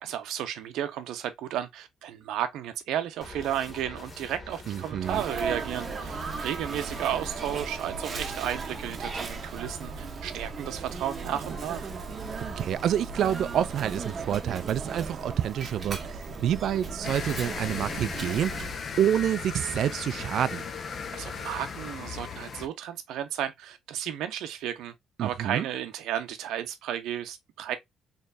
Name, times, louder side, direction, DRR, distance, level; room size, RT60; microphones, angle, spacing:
voice 1, 0.0-11.9 21.1-24.9 25.2-27.8, right 10 dB, 90° right, 0.7 m, -33 dB
sound 1, 3.2-7.6, left 1 dB, 20° left, 1.8 m, -45 dB
voice 2, 4.7-5.2 12.6-20.7 25.2-25.7, right 10 dB, 60° right, 0.3 m, -28 dB
Sneeze, 5.0-18.8, right 4 dB, 30° right, 0.8 m, -36 dB
sound 2, 17.0-22.7, left 6 dB, 40° left, 0.6 m, -36 dB
4.2 x 3.1 x 2.5 m
cardioid pair, 145°, 0 cm